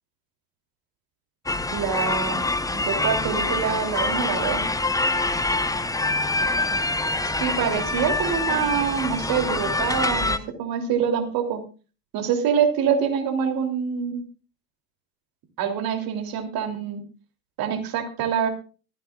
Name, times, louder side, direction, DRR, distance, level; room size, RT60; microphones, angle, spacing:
sound 1, 1.5-10.4, left 2 dB, 10° left, 1.1 m, -25 dB
voice 1, 1.7-2.4 2.7-4.6 7.4-11.6 12.1-14.2 15.6-17.0 17.6-18.5, right 7 dB, 55° right, 6 dB, 3.2 m, -25 dB
26.5 x 9.1 x 2.4 m, 0.35 s
hypercardioid pair, 70°, 44 cm